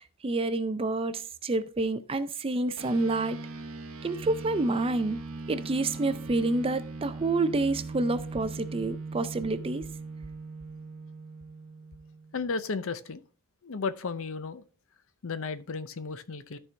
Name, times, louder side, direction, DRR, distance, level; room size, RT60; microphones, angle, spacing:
voice 1, 0.0-3.4 4.0-5.2 5.5-9.9, right 2 dB, 25° right, 0.4 m, -28 dB
sound 1, 2.8-12.5, right 3 dB, 65° right, 1.0 m, -40 dB
voice 2, 12.3-13.2 13.6-14.6 15.2-16.6, left 4 dB, 65° left, 0.6 m, -34 dB
13.0 x 4.5 x 3.3 m
head